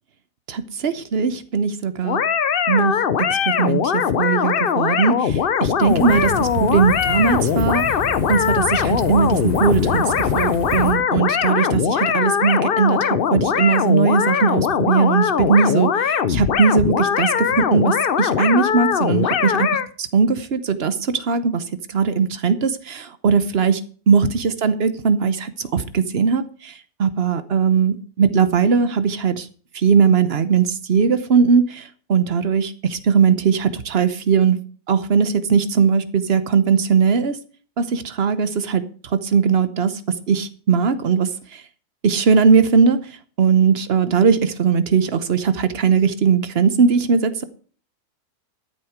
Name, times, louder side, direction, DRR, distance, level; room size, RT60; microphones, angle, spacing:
voice 1, 0.5-2.2 2.7-3.0 3.3-7.8 8.3-19.7 20.0-21.6 21.9-23.8 24.1-26.7 27.0-29.5 29.7-34.6 34.9-37.4 37.8-38.8 39.2-39.9 40.3-41.6 42.0-43.0 43.4-47.4, right 6 dB, 45° right, 12 dB, 1.0 m, -19 dB
sound 1, 2.0-19.9, left 8 dB, 55° left, 0.6 m, -21 dB
sound 2, 5.8-10.9, left 2 dB, 25° right, 2.2 m, -29 dB
12.5 x 7.7 x 5.0 m, 0.42 s
omnidirectional pair, 1.7 m